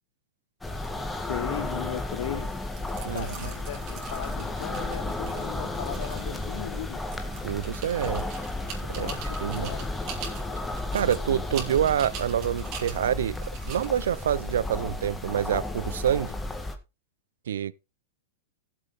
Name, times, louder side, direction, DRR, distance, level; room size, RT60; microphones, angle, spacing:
sound 1, 0.6-16.8, left 2 dB, 10° left, 1.8 m, -33 dB
voice 1, 1.1-2.6 3.1-7.1 8.9-9.9, left 12 dB, 65° left, 0.6 m, -37 dB
sound 2, 2.8-15.4, right 7 dB, 45° right, 4.7 m, -44 dB
voice 2, 7.4-8.2 8.9-9.1 9.4-9.7 10.9-13.4 13.7-16.3 17.5-17.7, right 10 dB, 75° right, 0.6 m, -26 dB
15.0 x 8.0 x 3.6 m
hypercardioid pair, 115°, 0 cm